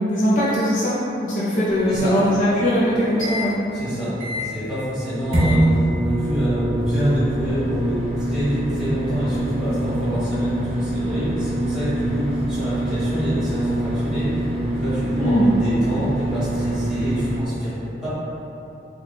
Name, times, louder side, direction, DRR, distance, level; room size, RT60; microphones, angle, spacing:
voice 1, 0.0-3.6 15.2-15.5, equal, 45° left, -9 dB, 0.5 m, -20 dB
sound 1, 1.7-3.5 3.9-4.0 4.2-4.7 5.3-17.4, right 1 dB, 35° right, 0.6 m, -25 dB
voice 2, 3.7-17.7 18.0-18.1, equal, 5° right, -14 dB, 1.3 m, -26 dB
3.1 x 2.3 x 3.9 m, 2.9 s
head